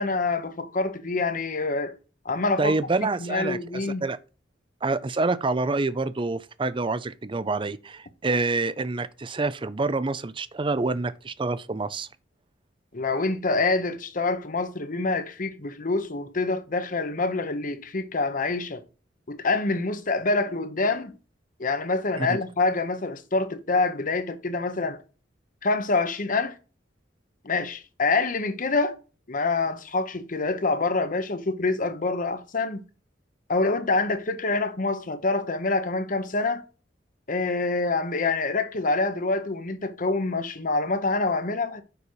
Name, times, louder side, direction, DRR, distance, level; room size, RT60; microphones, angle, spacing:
voice 1, 0.0-2.0 2.2-2.7 3.2-4.0 12.9-18.8 19.3-21.2 21.6-25.0 25.6-26.6 27.4-29.0 29.3-32.8 33.5-36.6 37.3-41.8, left 3 dB, 45° left, 1.0 m, -26 dB
voice 2, 2.6-3.6 4.0-4.2 4.8-12.1 22.2-22.4, right 3 dB, 30° right, 0.5 m, -27 dB
6.9 x 5.5 x 4.6 m
head